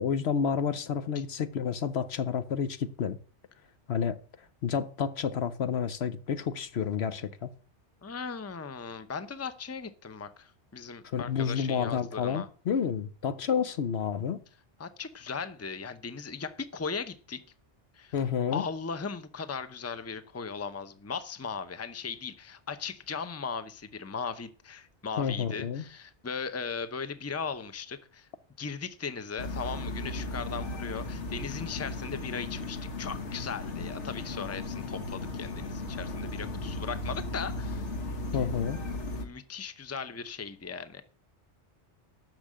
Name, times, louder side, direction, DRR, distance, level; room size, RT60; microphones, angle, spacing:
voice 1, 0.0-3.2 3.9-4.2 4.6-7.5 11.0-14.4 18.1-18.6 25.2-25.8 38.3-38.8, left 7 dB, 70° left, 1.1 m, -30 dB
voice 2, 8.0-12.5 14.8-17.4 17.9-18.1 18.5-28.3 28.6-37.9 39.2-41.0, left 5 dB, 15° left, 0.7 m, -38 dB
sound 1, 29.4-39.2, left 2 dB, 90° left, 1.6 m, -36 dB
10.0 x 6.6 x 7.5 m
omnidirectional pair, 1.2 m